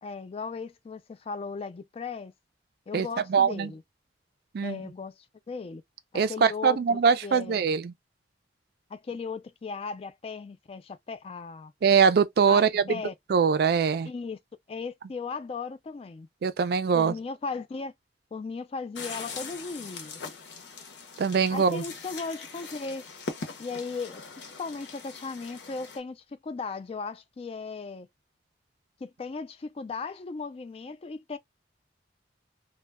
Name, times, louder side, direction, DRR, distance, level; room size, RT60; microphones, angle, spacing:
voice 1, 0.0-2.3 2.9-3.8 4.6-5.2 5.5-5.8 6.3-7.6 8.9-11.7 12.5-12.6 12.9-13.1 14.0-14.4 14.7-16.3 16.9-17.9 18.3-20.2 21.5-23.0 23.6-24.2 24.6-28.1 29.0-31.4, left 4 dB, 35° left, 0.3 m, -37 dB
voice 2, 2.9-3.7 4.5-4.8 6.1-7.9 11.8-13.0 13.3-14.1 16.4-17.1 21.2-21.8, right 6 dB, 60° right, 0.4 m, -23 dB
sound 1, 18.9-26.0, left 4 dB, 80° left, 0.7 m, -41 dB
2.1 x 2.1 x 3.3 m
head